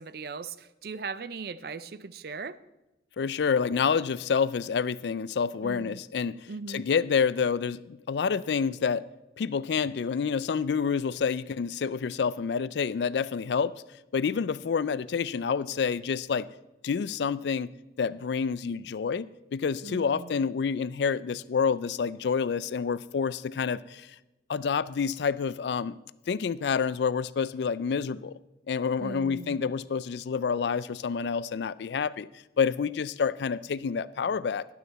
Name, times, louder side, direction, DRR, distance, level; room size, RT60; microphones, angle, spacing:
voice 1, 0.0-2.6 5.6-6.0 6.5-6.8 19.8-20.4 29.0-29.6, right 4 dB, 55° right, 0.5 m, -39 dB
voice 2, 3.2-9.1 9.4-13.8 14.1-16.5 16.8-17.7 18.0-24.1 24.5-26.0 26.3-28.4 28.7-32.3 32.6-34.7, left 6 dB, 75° left, 0.4 m, -28 dB
12.0 x 11.0 x 4.1 m
head